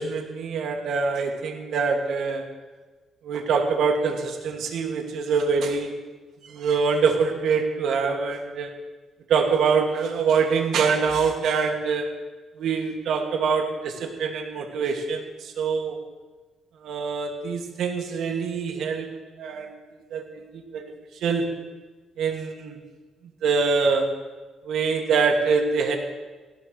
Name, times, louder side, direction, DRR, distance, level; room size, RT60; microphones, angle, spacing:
voice 1, 0.0-2.4 3.2-6.0 6.5-8.7 9.3-12.1 12.6-16.0 16.8-19.7 20.1-20.8 21.2-21.5 22.2-22.8 23.4-24.2 24.6-26.0, right 5 dB, 75° right, 2 dB, 2.2 m, -24 dB
18.5 x 17.0 x 3.3 m, 1.3 s
cardioid pair, 90°, 0 cm